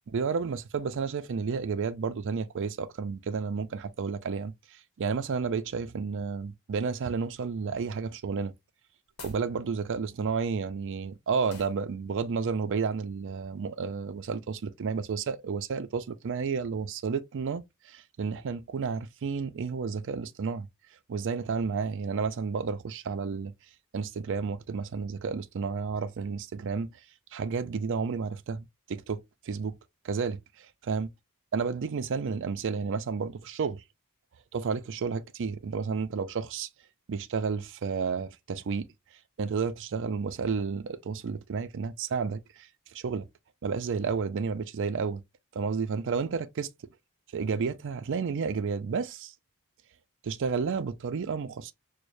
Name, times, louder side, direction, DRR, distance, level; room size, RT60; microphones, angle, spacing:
voice 1, 0.1-8.5 9.2-20.7 21.1-23.5 23.9-26.9 27.3-29.8 30.0-31.1 31.5-33.8 34.5-36.7 37.1-38.9 39.4-42.7 42.9-43.2 43.6-45.2 45.5-46.7 47.3-49.3 50.2-51.7, right 5 dB, 60° right, 0.4 m, -31 dB
sound 1, 9.0-9.5 11.5-11.8, left 3 dB, 90° left, 0.9 m, -45 dB
4.7 x 2.1 x 2.5 m
head